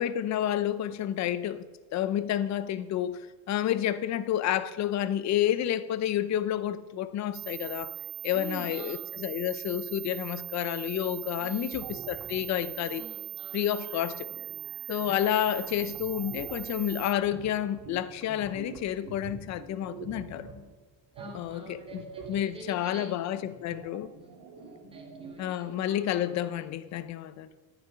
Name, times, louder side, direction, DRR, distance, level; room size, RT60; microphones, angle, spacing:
voice 1, 0.0-3.2 3.5-7.9 8.2-13.0 13.5-14.3 14.9-20.5 21.3-24.1 25.4-27.5, left 11 dB, 45° left, 0.7 m, -30 dB
sound 1, 7.3-17.1, right 18 dB, 60° right, 0.5 m, -40 dB
voice 2, 8.3-9.1 11.4-11.9 12.9-13.7 15.3-15.5 21.1-23.3 24.2-24.3 24.6-25.7, right 2 dB, 15° right, 2.1 m, -47 dB
sound 2, 11.7-12.4 12.8-13.1 13.5-20.7 21.1-26.4, right 4 dB, 85° right, 2.9 m, -47 dB
sound 3, 11.8-13.1 15.1-16.4 18.2-19.4, left 1 dB, 5° left, 1.5 m, -56 dB
12.5 x 9.4 x 5.6 m
cardioid pair, 175°, 38 cm